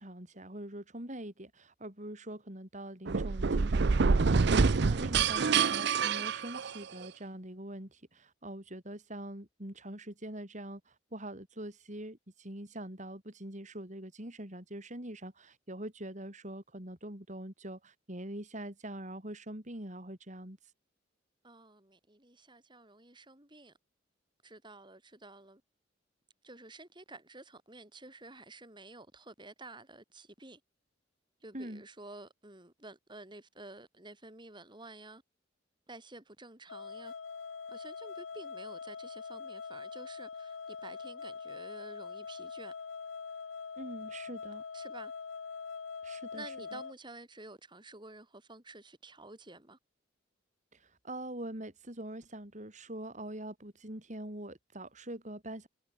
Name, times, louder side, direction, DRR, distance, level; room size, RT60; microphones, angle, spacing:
voice 1, 0.0-20.7 31.5-31.8 43.8-44.6 46.0-46.4 46.7-46.8 50.7-55.7, right 1 dB, 40° right, 5.0 m, -44 dB
sound 1, 3.1-7.1, right 5 dB, 60° right, 0.6 m, -27 dB
voice 2, 21.4-23.7 24.4-25.6 26.4-30.6 31.4-35.2 35.9-37.1 37.7-42.7 44.7-45.1 46.3-49.8, right 2 dB, 25° right, 5.9 m, -51 dB
sound 2, 36.7-46.9, left 5 dB, 90° left, 0.9 m, -43 dB
head